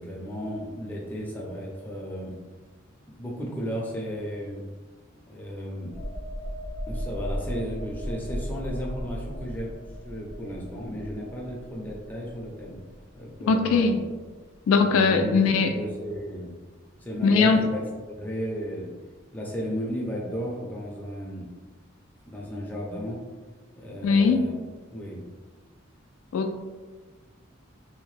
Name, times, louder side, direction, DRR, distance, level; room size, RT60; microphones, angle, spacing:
voice 1, 0.0-2.4 3.2-4.6 5.3-6.0 6.9-12.8 13.1-14.0 14.8-15.5 15.7-16.5 17.0-17.8 18.1-18.9 19.3-21.5 22.2-23.2 23.8-24.5 24.9-25.2, equal, 10° left, -4 dB, 0.5 m, -34 dB
sound 1, 5.9-13.3 13.7-13.9, equal, 45° right, 0.6 m, -36 dB
voice 2, 13.5-14.0 14.7-15.7 17.2-17.6 24.0-24.5 26.3-26.6, left 4 dB, 85° left, 5 dB, 0.3 m, -20 dB
2.7 x 2.1 x 3.1 m, 1.3 s
head